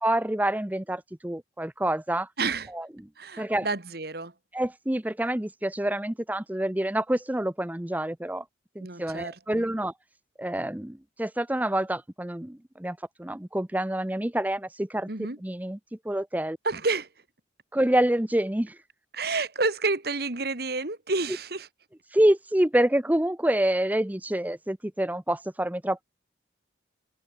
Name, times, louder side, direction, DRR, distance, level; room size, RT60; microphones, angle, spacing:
voice 1, 0.0-2.3 2.7-3.1 3.4-3.7 4.5-8.4 8.8-9.9 10.4-15.1 15.4-15.8 16.0-16.6 17.7-18.8 22.1-26.0, right 1 dB, 10° right, 0.6 m, -27 dB
voice 2, 2.4-2.7 3.2-4.3 8.8-9.6 15.1-15.4 16.6-17.1 19.1-21.7, right 3 dB, 55° right, 1.9 m, -29 dB
head